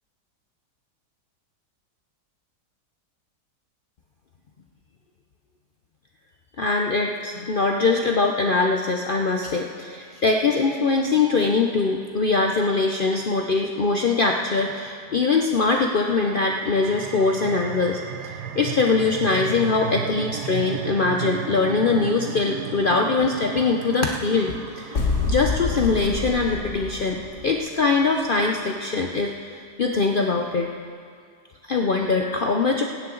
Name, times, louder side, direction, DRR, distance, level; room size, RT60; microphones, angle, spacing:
voice 1, 6.6-18.0 18.5-30.7 31.7-32.8, left 4 dB, 85° left, 2 dB, 0.4 m, -22 dB
sound 1, 16.1-27.3, right 9 dB, 70° right, 1.2 m, -35 dB
sound 2, 24.9-27.7, left 4 dB, 45° left, 1.5 m, -27 dB
21.0 x 9.8 x 3.9 m, 2.2 s
omnidirectional pair, 1.9 m